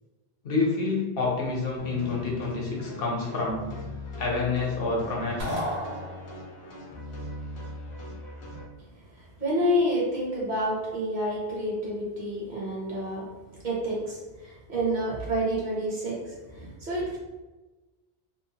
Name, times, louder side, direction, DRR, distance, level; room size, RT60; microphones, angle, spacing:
voice 1, 0.4-3.7 4.2-5.6, left 3 dB, 70° left, -2 dB, 0.9 m, -28 dB
sound 1, 1.8-8.6, left 2 dB, 40° left, 0.5 m, -40 dB
sound 2, 5.4-6.7, equal, 85° right, 1.0 m, -33 dB
voice 2, 9.1-13.3 13.6-17.2, equal, 50° right, -5 dB, 0.8 m, -29 dB
2.8 x 2.0 x 2.8 m, 1.2 s
omnidirectional pair, 1.1 m